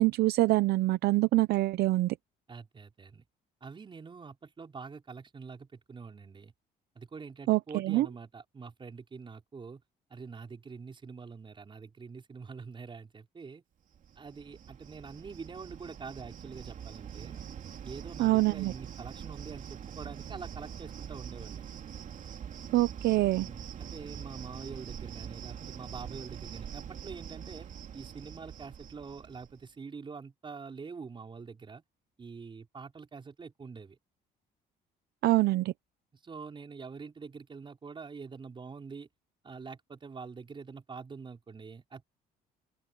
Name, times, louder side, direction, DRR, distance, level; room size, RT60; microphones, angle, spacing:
voice 1, 0.0-2.2 7.5-8.1 18.2-18.7 22.7-23.5 35.2-35.7, right 18 dB, 75° right, 0.7 m, -25 dB
voice 2, 2.5-3.2 3.6-6.5 7.0-9.8 10.1-13.6 14.2-17.4 17.8-21.6 23.3-27.7 27.9-31.8 32.2-34.0 36.1-39.1 39.4-42.0, right 5 dB, 30° right, 5.2 m, -45 dB
Cricket, 13.9-29.6, right 8 dB, 50° right, 2.9 m, -44 dB
open air
cardioid pair, 110°, 17 cm